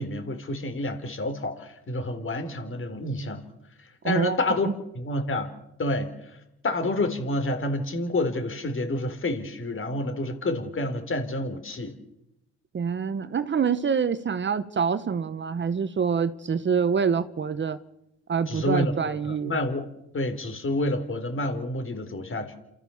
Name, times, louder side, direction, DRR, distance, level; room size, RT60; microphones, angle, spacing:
voice 1, 0.0-3.4 4.0-4.7 4.9-5.5 5.8-6.1 6.6-11.9 18.5-19.8 20.1-22.5, left 1 dB, 45° left, 4.1 m, -28 dB
voice 2, 4.0-4.5 12.7-17.8 18.3-19.5, right 6 dB, 40° right, 1.0 m, -26 dB
28.0 x 14.0 x 7.2 m
cardioid pair, 90°, 30 cm